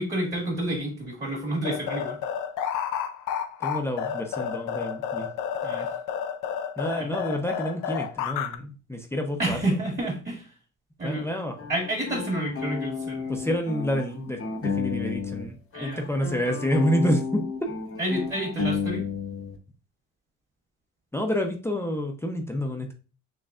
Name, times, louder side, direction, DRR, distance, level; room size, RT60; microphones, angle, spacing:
voice 1, 0.0-2.2 5.6-5.9 7.0-7.1 9.4-10.5 11.0-11.3 11.7-13.4 15.7-16.1 18.0-19.1, right 1 dB, 30° right, -3 dB, 2.1 m, -29 dB
sound 1, 1.6-8.6, left 8 dB, 90° left, 0.6 m, -31 dB
voice 2, 3.6-5.3 6.8-9.7 11.0-11.7 13.3-17.7 21.1-22.9, equal, 10° left, 3 dB, 0.7 m, -28 dB
sound 2, 11.6-15.5 15.7-19.6, left 5 dB, 50° left, 0.9 m, -32 dB
6.3 x 3.2 x 2.4 m, 0.35 s
cardioid pair, 90°, 30 cm